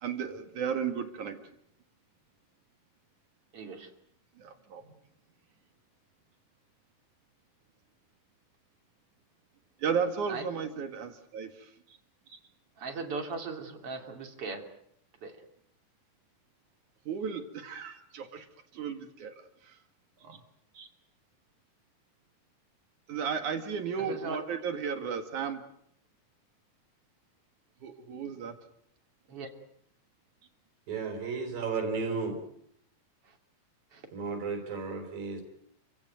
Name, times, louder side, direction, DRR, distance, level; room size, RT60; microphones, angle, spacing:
voice 1, 0.0-1.4 4.4-4.9 9.8-11.7 17.1-18.5 18.7-19.3 19.6-19.8 20.2-20.4 23.1-25.6 27.8-28.6, right 6 dB, 65° right, 7 dB, 3.3 m, -34 dB
voice 2, 3.5-3.9 10.3-10.4 11.9-12.0 12.3-12.4 12.8-14.7 15.2-15.4 20.7-20.9 24.0-24.4 29.3-29.5 33.3-33.4 33.9-34.0, right 4 dB, 45° right, 5 dB, 3.5 m, -38 dB
voice 3, 30.9-32.4 34.1-35.4, right 4 dB, 90° right, 4 dB, 5.8 m, -33 dB
29.5 x 16.5 x 9.2 m, 0.73 s
omnidirectional pair, 3.9 m